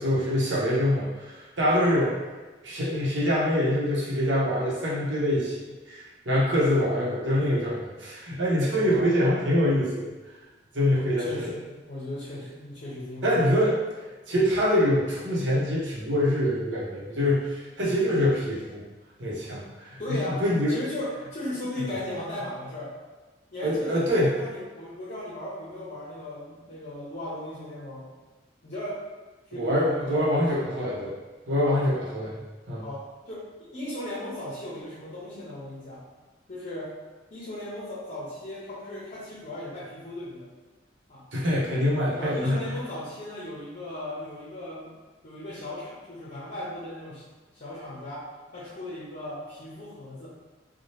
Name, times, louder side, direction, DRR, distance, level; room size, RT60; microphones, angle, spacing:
voice 1, 0.0-2.1 2.6-5.5 5.9-10.1 10.7-11.5 13.2-13.8 14.3-18.8 19.2-20.0 20.4-20.8 23.6-24.3 29.5-31.1 31.5-32.4 32.7-32.8 41.3-42.6, equal, 80° right, -5 dB, 0.9 m, -24 dB
voice 2, 1.7-2.2 6.8-7.2 8.8-9.1 11.2-13.7 20.0-22.9 23.5-28.1 28.6-29.0 29.5-30.9 31.6-31.8 32.8-33.4 33.7-36.0 36.5-36.9 37.3-40.5 41.1-41.3 42.2-44.9 45.2-47.2 47.5-50.3, left 1 dB, 45° left, -7 dB, 0.7 m, -37 dB
2.8 x 2.2 x 3.1 m, 1.2 s
head